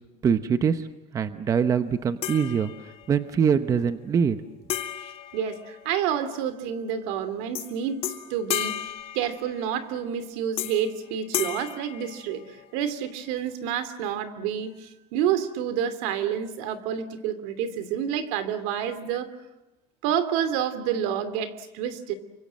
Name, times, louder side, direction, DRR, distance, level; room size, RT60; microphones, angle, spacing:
voice 1, 0.2-0.9 1.1-4.4, right 7 dB, 25° right, 10 dB, 1.0 m, -24 dB
sound 1, 2.2-3.2 4.7-6.3 7.5-7.7 8.0-9.9 10.6-11.0 11.3-12.8, left 11 dB, 40° left, 2.0 m, -34 dB
voice 2, 5.0-8.0 8.3-19.3 20.0-22.1, right 9 dB, 75° right, 11 dB, 2.9 m, -29 dB
29.0 x 25.0 x 7.7 m, 0.95 s
cardioid pair, 165°, 14 cm